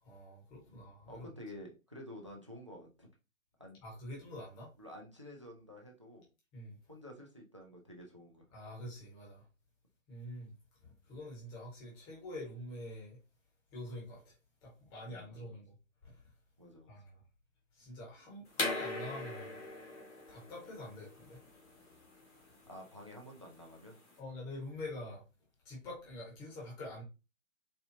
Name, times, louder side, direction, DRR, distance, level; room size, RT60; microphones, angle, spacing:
voice 1, 0.0-1.3 3.8-4.7 6.5-6.8 8.5-9.5 10.1-10.5 10.8-13.2 13.7-14.3 14.6-15.8 16.0-16.2 16.9-17.2 17.7-19.6 20.3-21.4 24.2-25.2 25.6-27.0, left 1 dB, 10° left, 0.9 m, -46 dB
voice 2, 1.1-3.1 3.6-3.8 4.8-6.3 6.9-8.5 15.1-15.6 16.6-16.9 22.7-24.0, left 1 dB, 25° right, 0.3 m, -51 dB
sound 1, 18.5-24.1, left 2 dB, 60° left, 1.5 m, -41 dB
4.2 x 2.2 x 2.6 m
figure-of-eight pair, 130°, 41 cm